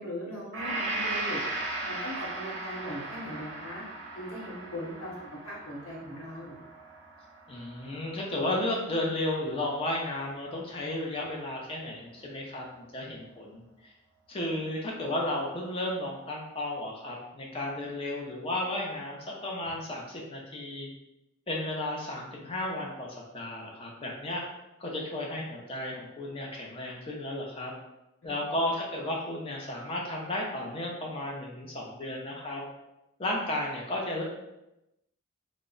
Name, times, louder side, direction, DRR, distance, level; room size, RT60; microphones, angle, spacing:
voice 1, 0.0-1.4 1.9-3.8 4.1-5.1 5.4-6.5 28.2-28.3, equal, 85° left, -4 dB, 0.9 m, -39 dB
Gong, 0.5-8.6, right 2 dB, 55° right, 0.5 m, -37 dB
voice 2, 7.5-13.6 14.3-20.9 21.5-24.4 24.8-27.7 28.2-32.6 33.2-34.2, left 1 dB, 25° left, -1 dB, 0.4 m, -33 dB
2.1 x 2.0 x 3.6 m, 0.92 s
head